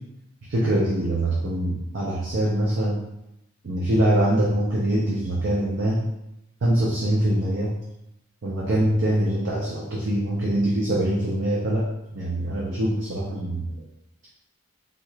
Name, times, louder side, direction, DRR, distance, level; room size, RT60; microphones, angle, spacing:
voice 1, 0.5-3.0 3.6-6.1 6.6-7.8 8.4-13.7, right 1 dB, 55° right, -4 dB, 0.5 m, -23 dB
3.6 x 2.4 x 3.0 m, 0.87 s
head